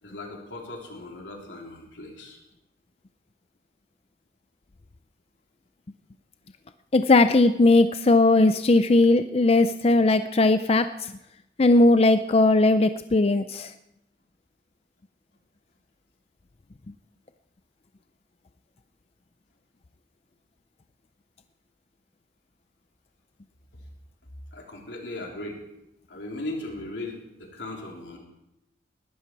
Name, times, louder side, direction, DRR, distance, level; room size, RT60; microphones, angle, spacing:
voice 1, 0.0-2.4 23.7-23.8 24.5-25.6 26.1-28.2, left 2 dB, 85° left, 0 dB, 3.6 m, -38 dB
voice 2, 6.9-11.1 11.6-13.7, left 2 dB, 35° left, 10 dB, 0.5 m, -19 dB
20.0 x 12.5 x 4.7 m, 0.87 s
head